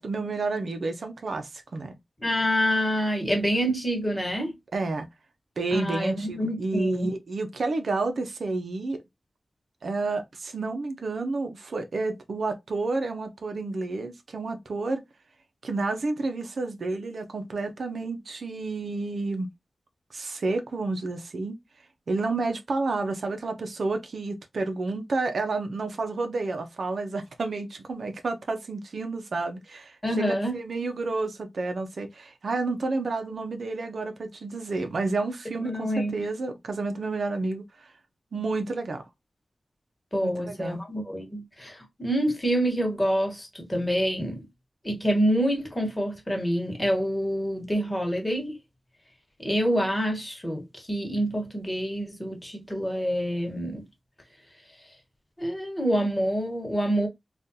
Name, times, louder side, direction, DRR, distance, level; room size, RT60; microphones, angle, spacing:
voice 1, 0.0-1.9 4.7-5.1 5.6-9.0 9.8-15.0 15.6-19.5 20.1-21.6 22.1-37.9 38.3-39.0 40.2-40.8, right 3 dB, 75° right, 0.7 m, -30 dB
voice 2, 2.2-4.6 5.7-7.1 30.0-30.6 35.6-36.3 40.1-44.4 44.8-48.6 49.4-53.9 55.4-57.1, equal, 15° left, 1.3 m, -27 dB
3.7 x 2.5 x 2.7 m
wide cardioid pair, 110°, 0 cm